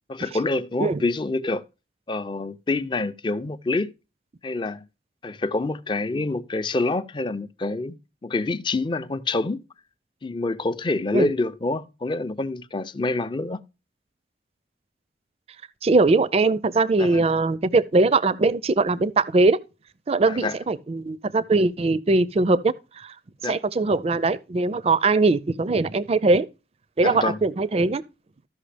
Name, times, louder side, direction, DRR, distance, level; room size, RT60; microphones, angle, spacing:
voice 1, 0.1-1.6 2.1-3.9 4.4-4.8 5.2-9.6 10.2-13.6 17.0-17.2 20.3-20.6 23.4-23.6 27.0-27.4, left 2 dB, 25° left, 0.4 m, -27 dB
voice 2, 15.8-19.6 20.1-23.1 23.5-26.5 27.0-28.0, right 3 dB, 35° right, 0.4 m, -21 dB
14.0 x 5.7 x 3.3 m
head